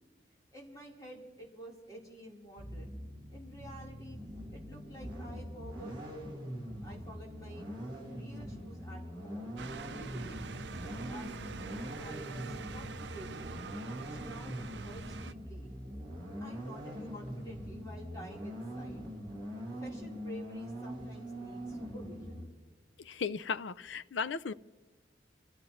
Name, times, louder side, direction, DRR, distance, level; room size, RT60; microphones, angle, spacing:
voice 1, 0.5-3.0 3.3-4.2 4.5-6.4 6.8-7.7 8.1-9.5 10.0-10.4 10.8-13.5 13.9-15.7 16.4-19.0 19.8-22.4, right 1 dB, 20° left, 4.0 m, -51 dB
Lotus Elise start rev idle, 2.6-22.4, equal, 25° right, 6.4 m, -43 dB
sound 1, 9.6-15.3, right 4 dB, 70° right, 0.6 m, -44 dB
voice 2, 23.0-24.5, left 5 dB, 85° left, 0.5 m, -36 dB
26.5 x 15.0 x 3.2 m
head